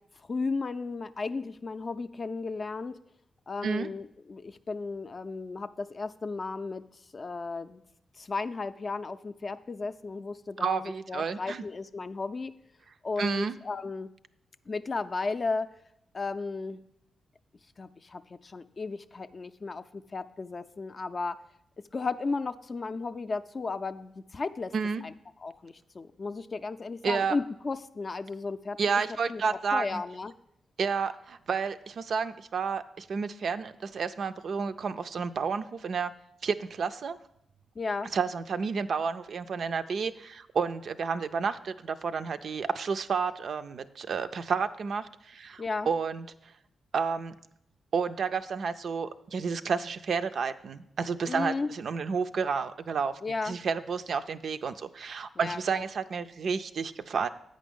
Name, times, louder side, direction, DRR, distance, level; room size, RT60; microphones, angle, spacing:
voice 1, 0.3-3.0 3.5-6.8 7.1-7.8 8.2-12.5 13.0-14.1 14.7-15.7 16.1-16.8 17.8-21.4 21.9-24.7 25.0-25.1 25.4-28.8 29.3-30.3 37.8-38.1 45.6-45.9 51.2-51.7 53.2-53.6 55.4-55.8, left 3 dB, 45° left, 10 dB, 0.4 m, -34 dB
voice 2, 10.6-11.6 13.2-13.6 24.7-25.0 27.0-27.4 28.8-30.0 30.8-36.1 36.4-37.2 38.1-46.3 46.9-47.3 47.9-53.1 53.4-57.3, right 5 dB, 65° right, 10 dB, 0.3 m, -31 dB
8.4 x 5.1 x 5.3 m, 0.78 s
hypercardioid pair, 40°, 0 cm